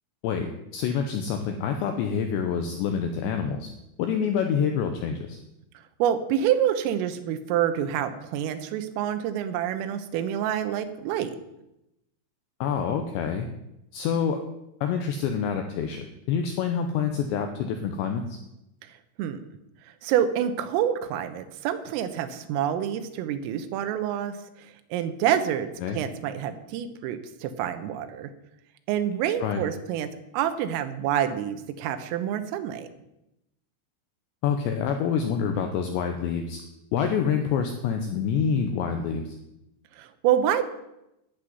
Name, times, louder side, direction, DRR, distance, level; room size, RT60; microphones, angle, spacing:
voice 1, 0.2-3.7 4.0-5.4 12.6-13.5 13.9-14.4 14.8-18.4 25.8-26.0 29.4-29.6 34.4-36.6 36.9-39.3, left 7 dB, 75° left, 5 dB, 2.8 m, -27 dB
voice 2, 6.0-11.3 19.2-19.4 20.0-28.3 28.9-32.9 40.0-40.6, right 10 dB, 85° right, 10 dB, 3.6 m, -27 dB
12.0 x 7.8 x 9.5 m, 0.88 s
omnidirectional pair, 6.0 m